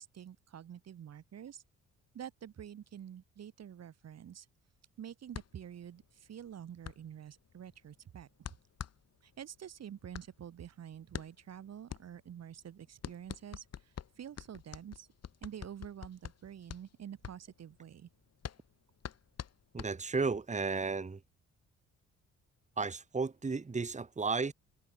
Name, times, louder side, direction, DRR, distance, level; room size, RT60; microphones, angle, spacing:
voice 1, 0.0-1.6 2.1-4.5 5.0-8.3 9.2-13.7 14.2-15.1 15.4-18.1, right 9 dB, 55° right, 2.6 m, -48 dB
sound 1, 5.3-20.4, left 8 dB, 55° left, 6.9 m, -47 dB
voice 2, 19.7-21.2 22.8-24.5, right 4 dB, 25° right, 2.2 m, -33 dB
cardioid pair, 90°, 30 cm